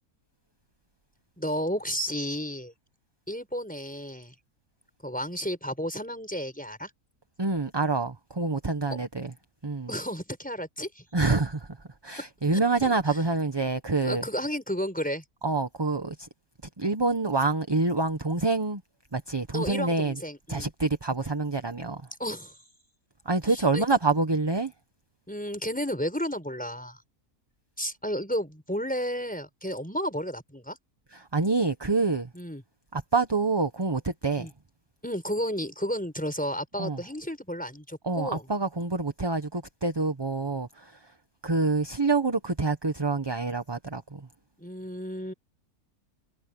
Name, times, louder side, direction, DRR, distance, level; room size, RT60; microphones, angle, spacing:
voice 1, 1.4-2.7 3.3-4.3 5.0-6.9 9.9-11.0 12.5-13.2 14.0-15.2 19.5-20.7 22.2-22.6 23.7-23.8 25.3-27.0 27.8-30.8 32.3-32.6 34.4-34.5 35.0-38.5 44.6-45.3, equal, 5° left, 4.8 m, -32 dB
voice 2, 7.4-9.3 9.6-9.9 11.1-11.7 12.0-14.2 15.4-16.3 16.8-18.8 19.1-20.2 20.5-22.0 23.2-24.7 31.1-32.3 32.9-34.5 36.8-37.0 38.0-41.1 41.4-44.3, right 3 dB, 20° right, 1.0 m, -27 dB
omnidirectional pair, 1.6 m